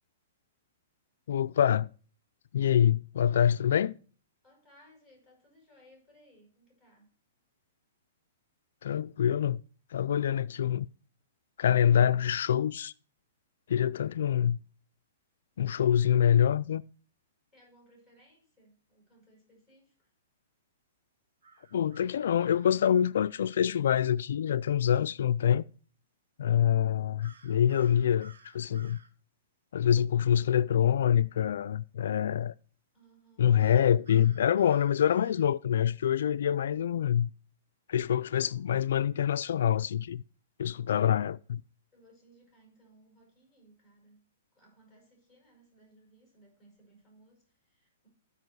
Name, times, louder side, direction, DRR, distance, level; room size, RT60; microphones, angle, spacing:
voice 1, 1.3-1.9 2.5-4.0 8.8-9.6 9.9-10.9 11.6-12.9 13.7-14.6 15.6-16.8 21.7-25.6 26.4-29.0 29.7-32.5 33.4-37.3 37.9-40.2 40.6-41.6, left 9 dB, 70° left, 0.4 m, -26 dB
voice 2, 4.4-7.1 17.5-20.1 27.5-27.7 32.9-33.6 41.9-44.3 44.5-48.1, right 1 dB, 10° right, 6.5 m, -62 dB
sound 1, 21.4-22.8 27.2-29.1 33.6-35.5, right 3 dB, 85° right, 1.6 m, -56 dB
14.5 x 5.3 x 4.7 m
hypercardioid pair, 155°, 0 cm